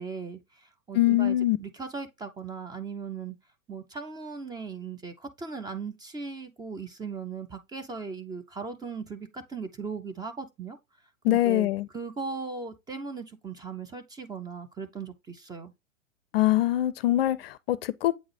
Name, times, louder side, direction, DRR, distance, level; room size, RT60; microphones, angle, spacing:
voice 1, 0.0-3.4 3.7-10.8 11.3-11.7 11.9-15.7, right 5 dB, 10° right, 0.6 m, -38 dB
voice 2, 0.9-1.6 11.2-11.9 16.3-18.1, left 15 dB, 50° left, 0.5 m, -23 dB
8.2 x 3.6 x 3.2 m
figure-of-eight pair, 100°, 39 cm